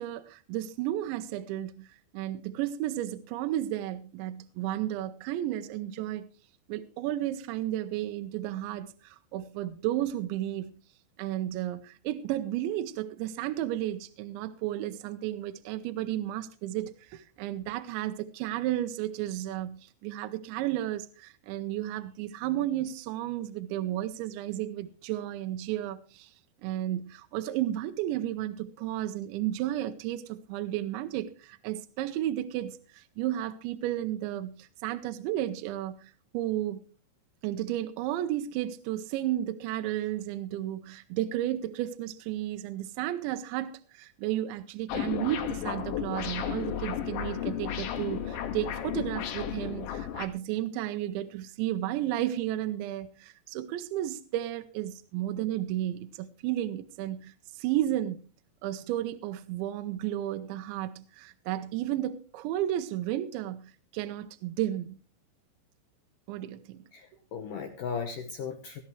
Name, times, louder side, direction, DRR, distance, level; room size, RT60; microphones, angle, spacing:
voice 1, 0.0-6.3 6.7-10.7 11.2-26.3 26.6-36.8 37.4-58.2 58.6-65.0 66.3-66.8, right 13 dB, 80° right, 9 dB, 3.0 m, -33 dB
sound 1, 44.9-50.3, left 9 dB, 85° left, 3.9 m, -33 dB
voice 2, 66.9-68.8, left 6 dB, 70° left, 5 dB, 2.0 m, -36 dB
19.0 x 13.5 x 3.2 m, 0.36 s
omnidirectional pair, 5.3 m